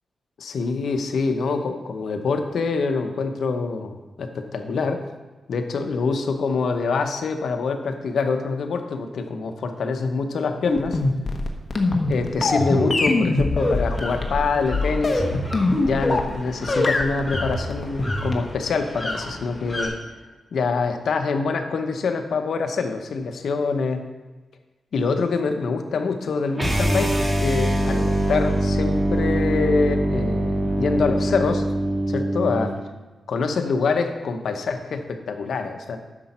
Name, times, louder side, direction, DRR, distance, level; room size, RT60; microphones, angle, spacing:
voice 1, 0.4-5.0 5.5-11.0 12.1-15.3 15.8-19.9 20.5-24.0 24.9-31.7 32.1-32.7 33.3-36.0, left 4 dB, 80° left, 6 dB, 0.9 m, -25 dB
sound 1, 10.6-16.4 16.7-18.5, left 2 dB, 40° left, 1.2 m, -22 dB
sound 2, 13.6-19.9, left 1 dB, 10° left, 2.9 m, -35 dB
sound 3, 26.5-32.7, right 1 dB, 20° right, 1.9 m, -23 dB
10.0 x 6.9 x 4.3 m, 1.2 s
cardioid pair, 90°, 0 cm